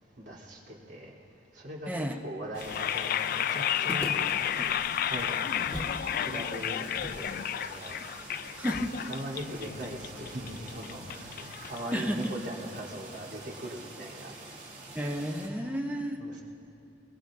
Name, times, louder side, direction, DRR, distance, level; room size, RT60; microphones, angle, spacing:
voice 1, 0.2-1.1 1.5-7.9 8.5-8.7 9.1-14.3 16.2-16.4, right 1 dB, 70° right, -6 dB, 3.3 m, -41 dB
voice 2, 1.9-2.2 8.6-9.0 11.9-12.3 14.9-16.2, equal, 10° right, 3 dB, 0.8 m, -32 dB
sound 1, 2.5-15.5, right 3 dB, 45° right, 3.5 m, -47 dB
sound 2, 2.6-12.6, left 10 dB, 55° left, 0.3 m, -32 dB
sound 3, 3.9-6.0 6.3-6.4 7.0-10.1, equal, 5° left, 1.2 m, -43 dB
23.0 x 21.5 x 2.6 m, 2.7 s
head